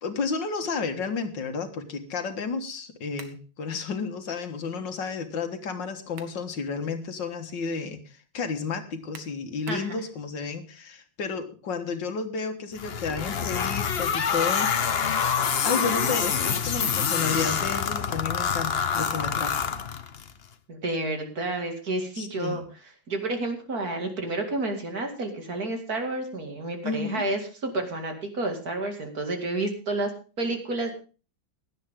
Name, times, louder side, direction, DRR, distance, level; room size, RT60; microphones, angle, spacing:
voice 1, 0.0-19.7 22.2-22.7 26.8-27.3, left 5 dB, 70° left, 7 dB, 2.1 m, -32 dB
sound 1, 3.2-3.5 5.8-6.4 6.9-7.0 9.1-9.9, right 7 dB, 90° right, 2.2 m, -47 dB
sound 2, 12.8-20.3, left 7 dB, 45° left, 0.8 m, -26 dB
voice 2, 20.7-22.6 23.1-30.1 30.4-30.9, right 2 dB, 50° right, 4 dB, 2.8 m, -30 dB
17.0 x 11.5 x 3.6 m, 0.35 s
omnidirectional pair, 2.1 m